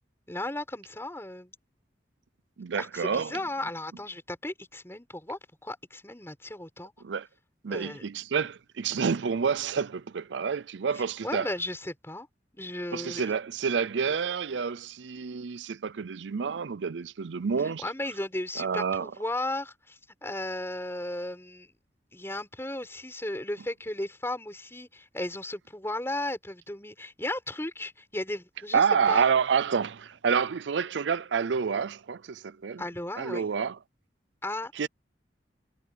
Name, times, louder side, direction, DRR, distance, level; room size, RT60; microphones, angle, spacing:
voice 1, 0.3-1.5 2.8-6.9 7.7-8.0 10.9-12.3 12.6-13.3 17.8-21.7 22.1-29.3 32.8-33.5 34.4-34.9, left 1 dB, 15° left, 4.9 m, -35 dB
voice 2, 2.6-3.3 7.0-7.3 7.6-11.5 12.9-17.8 18.6-19.1 28.7-32.8 33.2-33.8 34.7-34.9, right 6 dB, 85° right, 0.5 m, -28 dB
head